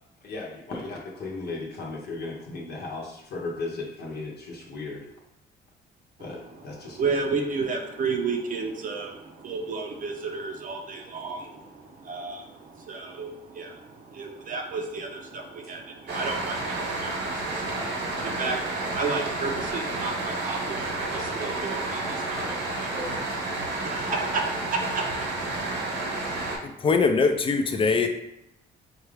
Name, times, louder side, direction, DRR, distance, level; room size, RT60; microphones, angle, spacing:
voice 1, 0.2-5.1 6.2-7.0 22.3-22.6 22.9-23.2, left 3 dB, 60° left, -2 dB, 0.8 m, -36 dB
voice 2, 6.8-22.9 23.6-25.3, right 4 dB, 45° right, 1 dB, 0.6 m, -32 dB
sound 1, 16.1-26.6, right 2 dB, 75° right, 1.0 m, -30 dB
voice 3, 26.6-28.1, left 4 dB, 30° left, 6 dB, 0.5 m, -22 dB
4.3 x 2.4 x 3.3 m, 0.83 s
cardioid pair, 105°, 19 cm